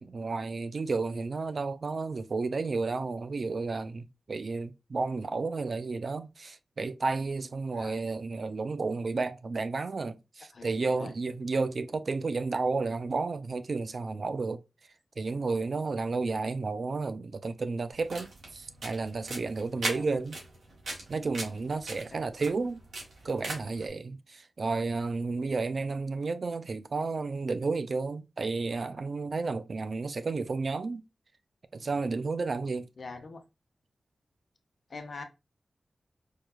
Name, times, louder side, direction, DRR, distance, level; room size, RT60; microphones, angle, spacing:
voice 1, 0.0-14.6 15.2-20.4 21.1-22.8 23.2-31.0 31.7-32.9, right 3 dB, 50° right, 0.4 m, -32 dB
voice 2, 10.5-11.1 19.8-20.1 33.0-33.4 34.9-35.2, left 3 dB, 55° left, 0.7 m, -43 dB
sound 1, 17.9-23.8, right 2 dB, 90° right, 1.5 m, -40 dB
4.6 x 2.3 x 2.3 m
wide cardioid pair, 120°, 0 cm